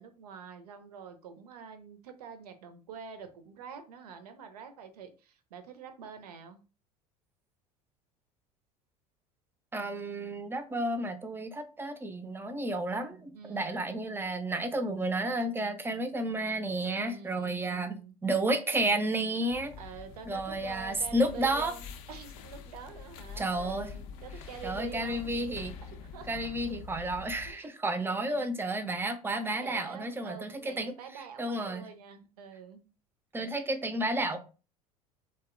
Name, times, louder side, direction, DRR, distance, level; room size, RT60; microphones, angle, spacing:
voice 1, 0.0-6.6 13.3-13.9 17.0-18.2 19.8-25.3 26.1-26.5 27.5-27.7 28.1-28.5 29.5-32.9, right 7 dB, 80° right, 0.4 m, -46 dB
voice 2, 9.7-19.8 20.3-21.7 23.4-23.9 24.6-25.8 26.3-30.9 31.4-31.9 33.3-34.4, right 1 dB, 10° right, 0.3 m, -31 dB
sound 1, 19.5-27.5, left 6 dB, 60° left, 0.4 m, -45 dB
2.5 x 2.0 x 2.4 m
hypercardioid pair, 75°, 20 cm